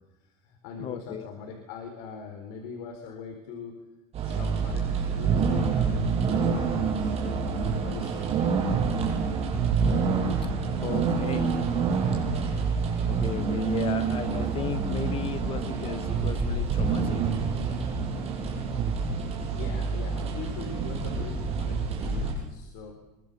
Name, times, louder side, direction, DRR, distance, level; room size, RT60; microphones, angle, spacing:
voice 1, 0.2-3.8 4.2-8.3 19.5-22.9, left 5 dB, 65° left, 3 dB, 4.5 m, -42 dB
voice 2, 0.8-1.3 10.6-11.6 13.1-17.3, left 8 dB, 25° left, 12 dB, 1.5 m, -35 dB
sound 1, 4.1-22.3, right 5 dB, 30° right, 7.4 m, -27 dB
25.0 x 23.5 x 7.0 m, 1.1 s
cardioid pair, 165°, 21 cm